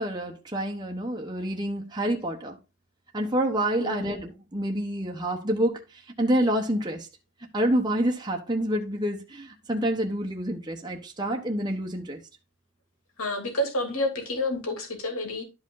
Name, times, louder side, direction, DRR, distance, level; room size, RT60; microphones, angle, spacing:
voice 1, 0.0-2.6 3.1-7.1 7.5-12.2, right 1 dB, 20° right, 1.1 m, -28 dB
voice 2, 13.2-15.4, left 1 dB, 75° left, 3.0 m, -29 dB
12.0 x 5.1 x 3.9 m
head